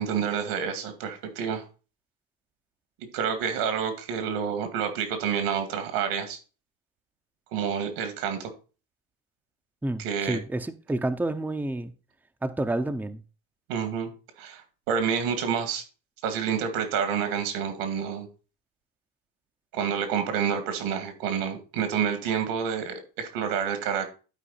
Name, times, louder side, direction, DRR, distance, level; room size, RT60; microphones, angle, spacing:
voice 1, 0.0-1.6 3.1-6.4 7.5-8.5 10.0-10.4 13.7-14.1 14.4-15.8 16.2-18.3 19.7-24.1, right 7 dB, 70° right, 2.2 m, -28 dB
voice 2, 9.8-11.9 12.4-13.2, right 2 dB, 5° right, 0.7 m, -29 dB
11.5 x 4.6 x 4.2 m
supercardioid pair, 80°, 40 cm